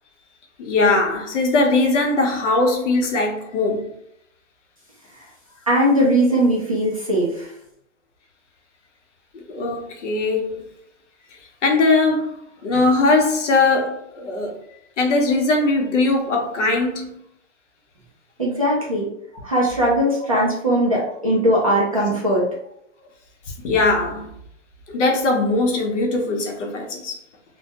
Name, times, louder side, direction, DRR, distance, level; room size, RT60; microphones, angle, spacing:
voice 1, 0.6-3.9 9.3-10.6 11.3-14.6 15.0-17.2 19.3-19.4 23.6-24.3 24.9-27.1, left 3 dB, 65° left, 0.8 m, -20 dB
voice 2, 5.7-7.5 18.4-19.1 19.4-22.5, equal, 30° right, 0.4 m, -19 dB
2.2 x 2.1 x 2.8 m
hypercardioid pair, 170°, 38 cm